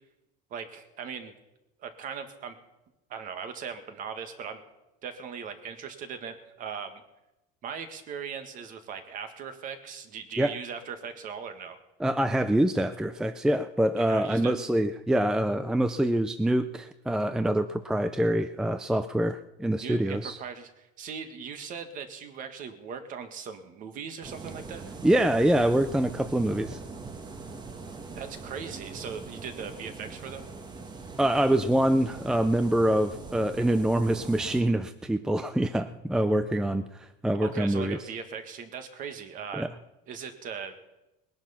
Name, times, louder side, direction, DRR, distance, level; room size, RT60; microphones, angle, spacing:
voice 1, 0.5-1.3 1.8-2.6 3.1-4.6 5.0-7.0 7.6-11.8 14.0-14.6 19.7-24.9 28.2-30.5 37.4-39.7 40.1-40.8, right 6 dB, 40° right, 8 dB, 1.8 m, -39 dB
voice 2, 12.0-20.4 25.0-26.8 31.2-38.0 39.5-39.7, right 1 dB, 5° right, 11 dB, 0.4 m, -25 dB
sound 1, 24.2-34.6, right 4 dB, 20° right, 1.4 m, -42 dB
20.0 x 10.5 x 5.8 m, 0.97 s
cardioid pair, 145°, 21 cm